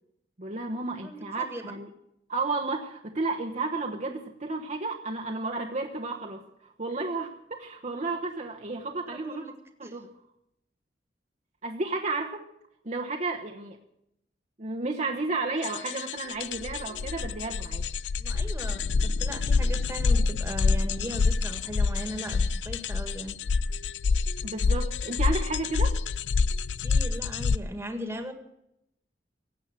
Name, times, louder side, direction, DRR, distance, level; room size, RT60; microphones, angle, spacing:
voice 1, 0.4-1.9 2.3-9.4 9.8-10.1 11.6-12.5 12.8-13.8 14.6-17.9 24.4-26.0, right 3 dB, 40° right, 1 dB, 1.1 m, -32 dB
voice 2, 1.0-1.7 9.1-9.5 9.8-10.0 18.2-23.4 26.8-28.3, equal, 15° right, 6 dB, 1.8 m, -38 dB
sound 1, 15.6-27.6, left 4 dB, 85° left, 0.5 m, -27 dB
16.5 x 8.4 x 9.0 m, 0.80 s
head